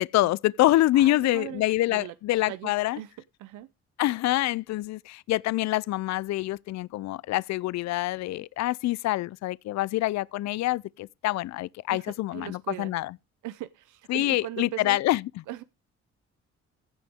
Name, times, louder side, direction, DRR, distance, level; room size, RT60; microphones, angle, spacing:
voice 1, 0.0-3.0 4.0-13.1 14.1-15.2, left 16 dB, 65° left, 0.4 m, -26 dB
voice 2, 0.9-1.6 1.9-2.1 2.5-3.1 3.4-3.7 11.9-12.9 13.4-15.0 15.5-15.6, right 14 dB, 85° right, 0.6 m, -39 dB
15.5 x 5.9 x 3.5 m
cardioid pair, 90°, 30 cm